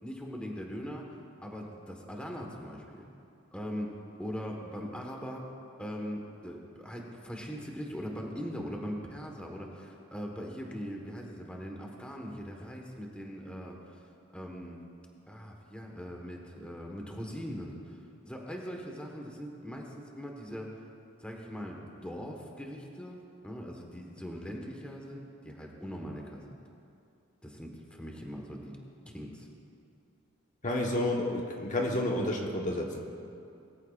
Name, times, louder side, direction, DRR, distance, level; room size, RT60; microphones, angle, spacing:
voice 1, 0.0-1.0 1.4-3.0 3.5-5.4 5.8-14.1 14.3-14.8 15.3-18.0 18.2-20.8 21.2-26.4 27.4-28.7 29.1-29.5, equal, 5° left, 0 dB, 1.3 m, -41 dB
voice 2, 30.6-33.1, left 1 dB, 40° left, 0 dB, 1.2 m, -30 dB
21.5 x 14.0 x 2.5 m, 2.6 s
head